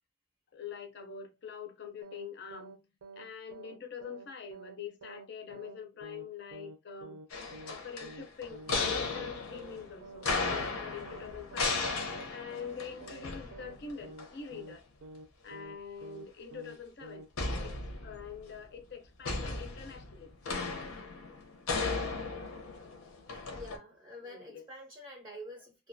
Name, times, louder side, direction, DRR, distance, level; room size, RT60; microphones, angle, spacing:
voice 1, 0.5-2.7 3.2-7.2 7.7-11.8 12.3-14.8 15.4-17.2 17.6-17.7 18.0-20.3 24.2-24.6, left 6 dB, 50° left, 0.4 m, -44 dB
sound 1, 2.0-2.3 2.5-2.8 3.0-3.3 3.5-3.8 4.0-4.3 4.5-4.8 5.0-5.3 5.5-5.8 6.0-6.3 6.5-6.8 7.0-7.3 7.5-8.3 8.5-8.8 9.0-9.3 9.5-9.8 10.0-10.3 10.5-10.8 11.0-11.3 11.5-11.8 12.0-12.3 12.5-12.8 13.0-13.3 13.5-13.8 14.0-14.3 14.5-14.8 15.0-15.3 15.5-16.3 16.5-16.8 17.0-17.3 17.5-17.8, right 3 dB, 75° right, 0.4 m, -49 dB
sound 2, 7.3-13.9 14.2-14.3 17.4-18.4 19.2-23.8, left 3 dB, 90° left, 0.7 m, -36 dB
voice 2, 23.6-25.9, equal, 20° right, 0.4 m, -47 dB
2.3 x 2.2 x 2.5 m
head